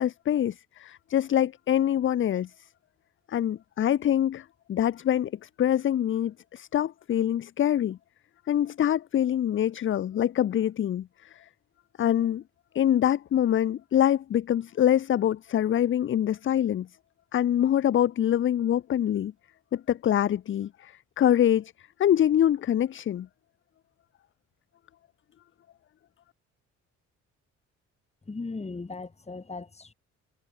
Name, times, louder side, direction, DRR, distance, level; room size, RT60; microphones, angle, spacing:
voice 1, 0.0-2.5 3.3-8.0 8.5-11.1 11.3-11.5 12.0-12.4 12.7-16.9 17.3-19.3 19.7-21.7 22.0-23.3, left 10 dB, 40° left, 0.5 m, -25 dB
voice 2, 28.3-29.9, left 3 dB, 20° left, 2.6 m, -37 dB
cardioid pair, 90°, 30 cm